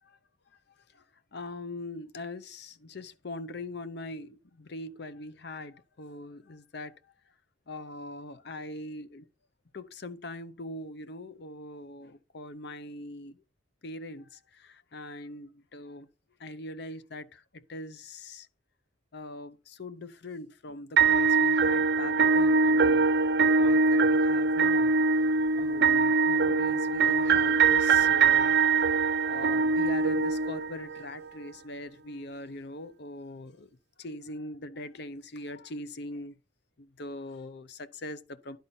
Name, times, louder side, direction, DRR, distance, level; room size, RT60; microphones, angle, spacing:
voice 1, 1.3-6.9 7.7-9.3 9.7-13.4 13.8-16.1 16.4-18.5 19.1-23.0 23.4-28.5 29.3-33.7 34.0-36.4 36.8-38.6, left 1 dB, 60° left, 0.7 m, -41 dB
sound 1, 21.0-31.0, right 4 dB, 60° right, 0.6 m, -23 dB
10.5 x 5.2 x 4.3 m
head